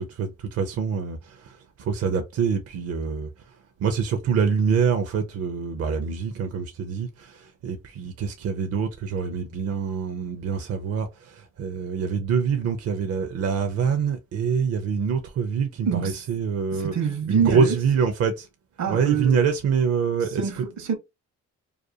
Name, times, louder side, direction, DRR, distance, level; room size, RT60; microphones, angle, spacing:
voice 1, 0.0-18.5 18.9-20.7, right 6 dB, 55° right, 0.5 m, -25 dB
voice 2, 15.9-16.2 16.7-17.8 18.8-19.4 20.4-20.9, right 7 dB, 70° right, 0.9 m, -25 dB
2.4 x 2.3 x 2.7 m
cardioid pair, 90°, 30 cm